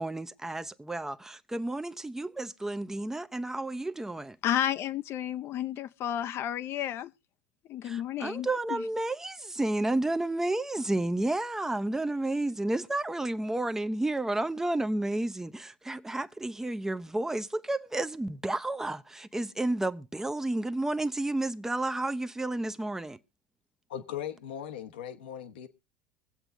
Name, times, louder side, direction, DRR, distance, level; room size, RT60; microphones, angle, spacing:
voice 1, 0.0-4.4 7.8-23.2, right 2 dB, 10° right, 0.7 m, -31 dB
voice 2, 4.4-7.1 7.7-8.8, left 10 dB, 50° left, 0.6 m, -32 dB
voice 3, 23.9-25.7, left 9 dB, 85° left, 1.1 m, -38 dB
23.5 x 7.9 x 2.5 m
hypercardioid pair, 85°, 5 cm